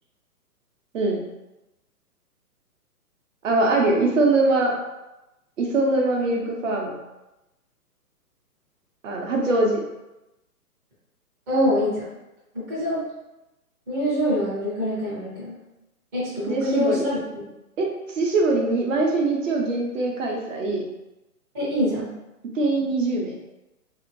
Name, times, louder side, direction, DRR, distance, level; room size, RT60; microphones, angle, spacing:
voice 1, 3.4-4.7 5.6-7.0 9.0-9.8 16.5-17.0 17.8-20.8 22.5-23.3, right 2 dB, 55° right, 0 dB, 0.7 m, -22 dB
voice 2, 11.5-12.0 12.5-13.0 13.9-15.6 16.1-17.4 21.5-22.1, equal, 10° right, -11 dB, 0.5 m, -25 dB
2.8 x 2.5 x 2.5 m, 0.97 s
hypercardioid pair, 135°, 47 cm